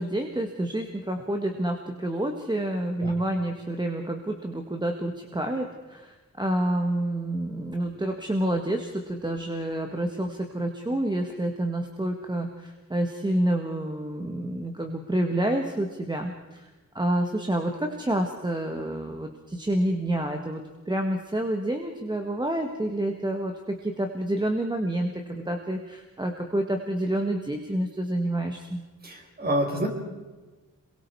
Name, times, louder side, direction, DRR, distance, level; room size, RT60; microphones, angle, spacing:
voice 1, 0.0-16.7 16.9-28.8, right 1 dB, 15° right, 3 dB, 1.6 m, -28 dB
voice 2, 29.0-29.9, right 1 dB, 30° right, 2 dB, 4.9 m, -27 dB
27.0 x 23.0 x 4.7 m, 1.2 s
wide cardioid pair, 135°, 32 cm